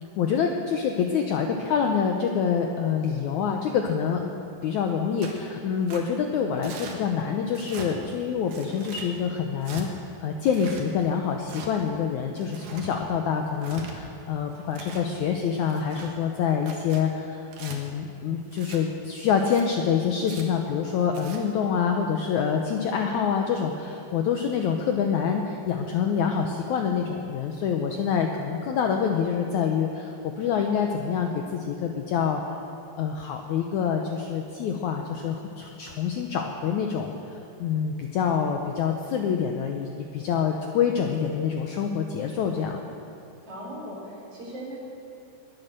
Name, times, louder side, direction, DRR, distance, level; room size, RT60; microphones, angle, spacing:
voice 1, 0.2-4.3 4.6-9.9 10.2-32.4 33.0-42.8, left 7 dB, 75° left, 3 dB, 1.8 m, -26 dB
Tearing, 5.2-5.4 5.9-6.0 6.6-7.0 7.5-7.9 8.5-9.1 9.6-9.9 10.5-10.8 11.4-11.7 12.4-12.9 13.5-13.9 14.5-15.1 15.6-16.1 16.6-17.0 17.5-17.8 18.5-18.8 19.4-19.6 20.2-20.4 21.0-21.4, right 5 dB, 70° right, 3.1 m, -42 dB
voice 2, 43.4-44.8, equal, 40° right, -6 dB, 5.4 m, -38 dB
21.0 x 8.9 x 6.6 m, 2.8 s
omnidirectional pair, 4.2 m